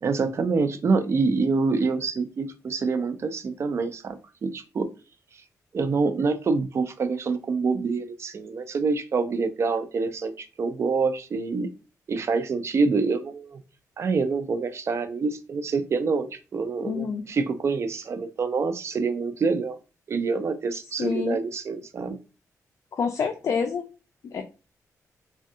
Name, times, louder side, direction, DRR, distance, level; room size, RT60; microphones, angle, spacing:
voice 1, 0.0-4.9 5.7-11.7 12.1-13.6 14.0-19.8 20.1-22.2, right 4 dB, 50° right, 9 dB, 0.4 m, -26 dB
voice 2, 16.9-17.2 21.0-21.4 22.9-23.9 24.2-24.4, left 6 dB, 55° left, 6 dB, 0.3 m, -27 dB
3.4 x 2.2 x 2.6 m, 0.32 s
cardioid pair, 105°, 6 cm